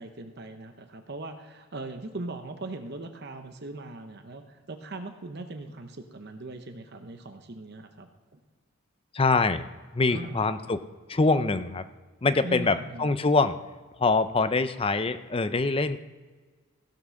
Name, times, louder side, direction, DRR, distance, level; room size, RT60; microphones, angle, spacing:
voice 1, 0.0-8.4 10.1-10.7 12.4-13.1, right 2 dB, 50° right, 7 dB, 0.8 m, -40 dB
voice 2, 9.1-9.7 10.0-10.8 11.1-11.8 12.2-13.5 14.0-16.0, left 3 dB, 25° left, 11 dB, 0.5 m, -24 dB
16.0 x 5.9 x 6.3 m, 1.4 s
head